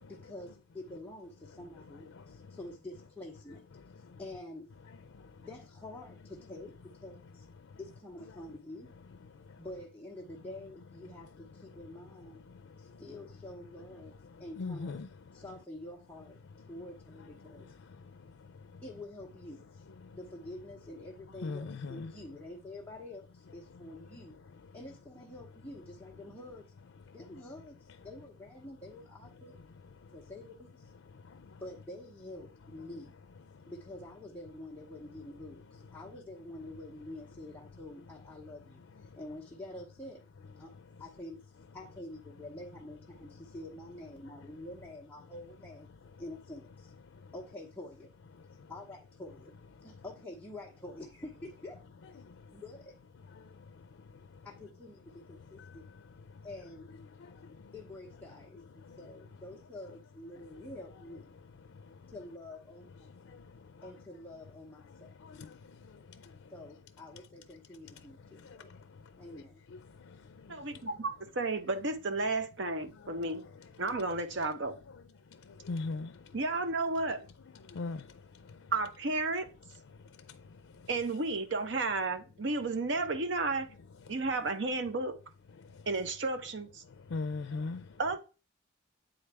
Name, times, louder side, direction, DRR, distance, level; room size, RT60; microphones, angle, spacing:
voice 1, 0.0-3.6 4.0-4.7 5.4-6.7 7.0-7.5 7.8-8.9 9.6-12.4 12.8-15.0 15.3-16.4 16.7-17.7 18.8-19.8 20.1-24.4 24.7-26.7 27.1-29.6 30.1-30.9 31.6-33.1 33.7-40.2 40.6-40.7 41.0-45.9 46.2-46.9 47.3-48.1 48.7-49.5 49.8-51.8 52.1-52.2 52.5-52.9 54.4-55.9 56.4-56.9 57.7-61.3 62.1-62.9 63.8-65.1 66.5-68.7 69.2-69.6, left 1 dB, 5° left, 0.9 m, -47 dB
voice 2, 14.6-15.1 21.4-22.1 75.7-76.1 77.8-78.0 87.1-87.8, left 3 dB, 85° left, 0.5 m, -36 dB
voice 3, 70.5-73.5 73.8-74.8 76.3-77.2 78.7-79.5 80.9-83.7 84.1-85.2 85.9-86.8 88.0-88.2, right 3 dB, 65° right, 0.8 m, -32 dB
8.7 x 3.9 x 3.4 m
head